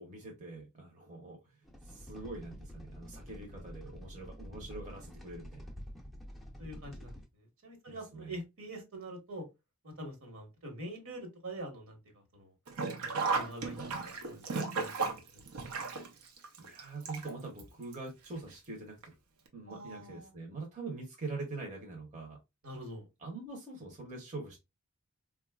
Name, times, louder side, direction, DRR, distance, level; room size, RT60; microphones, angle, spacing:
voice 1, 0.0-1.4 1.8-5.7 7.9-8.3 16.6-19.0 19.5-22.4 23.2-24.6, right 3 dB, 35° right, 0.7 m, -44 dB
sound 1, 1.6-7.3, equal, ahead, 0.5 m, -48 dB
voice 2, 6.6-9.4 9.8-12.0 12.3-12.5 13.0-14.0 14.2-15.0 15.3-15.4 15.7-15.8 19.7-20.3 22.6-23.1, right 1 dB, 65° right, 1.2 m, -45 dB
Sink (filling or washing), 12.7-17.6 17.9-18.0 19.0-19.1 19.5-19.6, right 4 dB, 85° right, 0.7 m, -35 dB
3.8 x 2.3 x 2.2 m
head